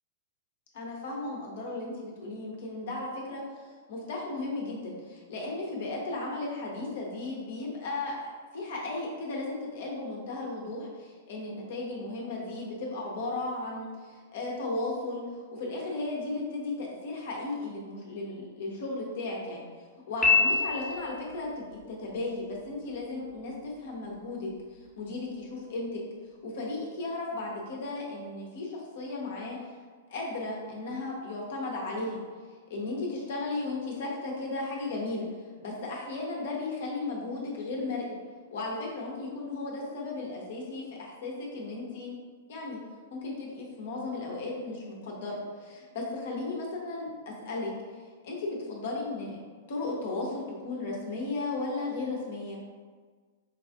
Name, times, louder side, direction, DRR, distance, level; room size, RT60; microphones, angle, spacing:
voice 1, 0.7-8.3 8.5-19.6 20.1-26.0 26.4-29.6 30.1-32.2 32.7-35.3 35.6-38.0 38.5-42.2 42.5-42.8 43.1-47.7 48.2-49.4 49.7-52.6, left 2 dB, 55° left, -2 dB, 0.8 m, -35 dB
Piano, 20.2-21.3, left 4 dB, 15° left, 0.7 m, -24 dB
4.7 x 2.4 x 2.5 m, 1.5 s
figure-of-eight pair, 100°, 0 cm